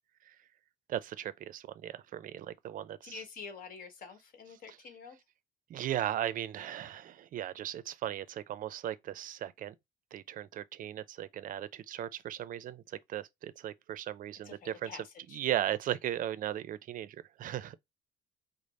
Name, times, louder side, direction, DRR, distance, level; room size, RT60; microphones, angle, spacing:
voice 1, 0.9-3.1 5.7-9.7 10.1-14.9 15.3-17.7, right 11 dB, 55° right, 0.5 m, -37 dB
voice 2, 3.0-5.2 14.4-15.4, left 5 dB, 55° left, 1.2 m, -47 dB
5.0 x 2.0 x 4.1 m
cardioid pair, 110°, 17 cm